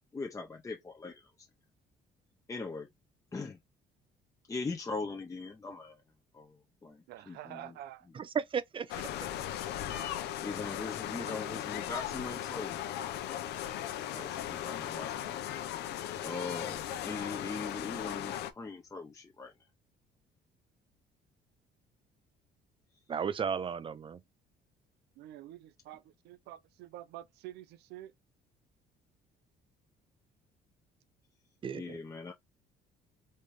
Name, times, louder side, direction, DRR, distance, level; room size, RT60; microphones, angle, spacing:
voice 1, 0.1-1.5 2.5-2.9 3.3-3.6 4.5-6.0 6.3-7.7 10.4-12.8 14.1-15.5 16.2-19.5 31.7-32.3, left 3 dB, 20° left, 0.8 m, -41 dB
voice 2, 7.1-8.1 25.2-28.1, right 13 dB, 80° right, 0.6 m, -48 dB
voice 3, 8.1-8.9 23.1-24.2 31.6-32.0, right 7 dB, 30° right, 0.5 m, -34 dB
sound 1, 8.9-18.5, left 11 dB, 80° left, 0.8 m, -37 dB
4.3 x 3.5 x 3.2 m
cardioid pair, 110°, 17 cm